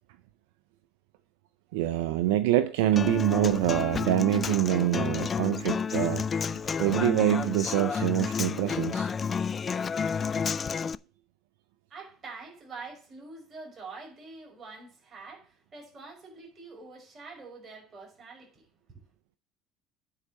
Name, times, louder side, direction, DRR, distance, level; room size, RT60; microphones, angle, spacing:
voice 1, 1.7-6.3 6.5-9.1, right 13 dB, 80° right, 0.5 m, -25 dB
Human voice / Acoustic guitar, 3.0-10.9, left 6 dB, 40° left, 0.4 m, -30 dB
voice 2, 11.9-19.0, right 4 dB, 40° right, 5.5 m, -46 dB
9.7 x 4.7 x 7.5 m
hypercardioid pair, 70°, 0 cm